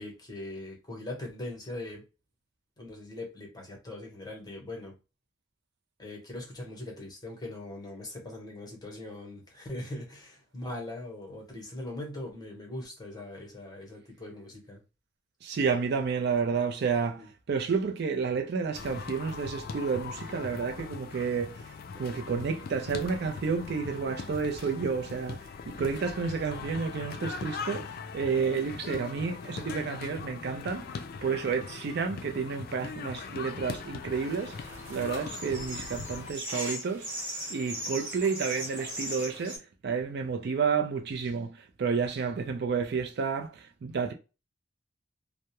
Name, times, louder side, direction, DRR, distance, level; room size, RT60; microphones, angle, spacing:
voice 1, 0.0-2.0 2.8-4.9 6.0-14.8 17.2-17.3, left 1 dB, 20° left, 0.8 m, -41 dB
voice 2, 15.4-21.6 22.0-25.4 25.7-34.6 34.9-37.1 37.5-39.6 39.8-44.1, right 5 dB, 55° right, 0.4 m, -30 dB
sound 1, 18.7-36.3, left 5 dB, 50° left, 0.3 m, -40 dB
sound 2, 34.1-39.6, equal, 40° right, 1.1 m, -39 dB
2.2 x 2.0 x 2.8 m
head